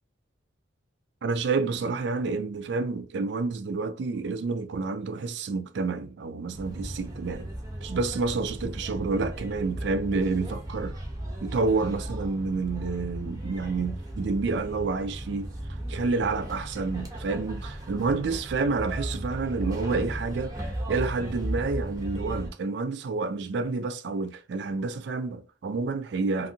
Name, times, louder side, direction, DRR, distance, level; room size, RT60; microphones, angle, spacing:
voice 1, 1.2-7.5 7.8-10.9 11.4-15.5 15.9-26.5, right 4 dB, 55° right, 0.3 m, -29 dB
sound 1, 6.5-22.5, right 1 dB, 20° right, 0.6 m, -36 dB
2.6 x 2.5 x 2.6 m
head